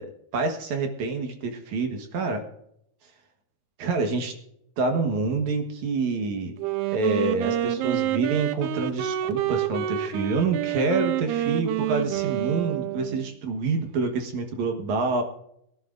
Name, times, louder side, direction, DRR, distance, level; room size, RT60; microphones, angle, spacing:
voice 1, 0.3-2.4 3.8-4.3 4.8-6.5 6.9-15.2, right 3 dB, 55° right, 5 dB, 2.3 m, -27 dB
Wind instrument woodwind instrument, 6.6-13.3, right 13 dB, 90° right, 2.8 m, -28 dB
23.0 x 11.0 x 2.6 m, 0.74 s
omnidirectional pair, 4.6 m